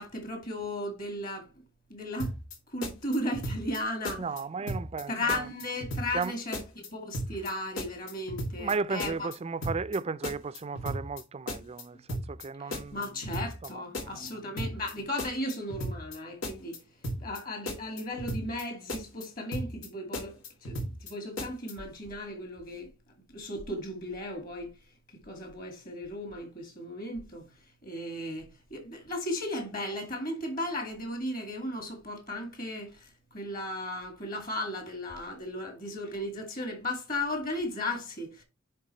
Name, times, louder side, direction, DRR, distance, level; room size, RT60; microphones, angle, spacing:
voice 1, 0.0-1.6 1.9-2.3 2.7-4.2 5.1-6.6 6.9-9.1 12.7-16.8 17.2-20.3 20.6-22.9 23.3-24.8 25.2-27.5 27.8-38.4, left 1 dB, 45° left, 2.2 m, -35 dB
sound 1, 2.2-2.6 2.8-3.8 4.0-4.4 4.7-5.0 5.3-6.3 6.5-6.9 7.1-7.5 7.8-8.7 9.0-9.4 9.6-10.0 10.2-11.2 11.5-11.8 12.1-12.4 12.7-13.7 13.9-14.3 14.6-14.9 15.2-16.2 16.4-16.8 17.0-17.4 17.7-18.6 18.9-19.3 19.5-19.9 20.1-21.1 21.4-21.7, equal, 90° left, 2.3 m, -35 dB
voice 2, 4.2-5.5 6.1-6.4 7.3-7.4 8.6-13.3 13.6-14.4, right 4 dB, 30° right, 0.4 m, -35 dB
10.5 x 3.5 x 4.4 m
head